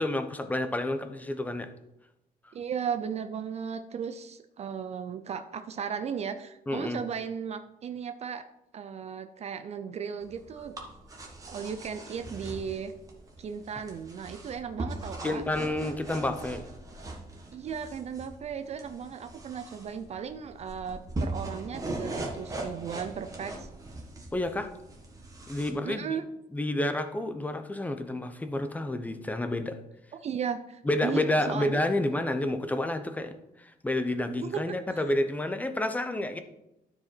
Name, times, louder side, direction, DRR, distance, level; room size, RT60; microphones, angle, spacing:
voice 1, 0.0-1.7 2.4-2.5 6.7-7.0 15.2-16.7 24.3-24.7 25.5-26.2 26.5-29.8 30.8-36.4, left 1 dB, 10° left, 9 dB, 0.6 m, -30 dB
voice 2, 2.5-8.4 8.7-10.8 11.5-12.9 13.4-15.4 17.5-23.7 25.8-26.2 30.1-31.8 34.3-34.8, right 7 dB, 45° right, 9 dB, 0.4 m, -36 dB
sound 1, 10.2-25.7, right 2 dB, 20° right, 1.4 m, -40 dB
12.5 x 4.8 x 4.4 m, 0.88 s
cardioid pair, 165°, 16 cm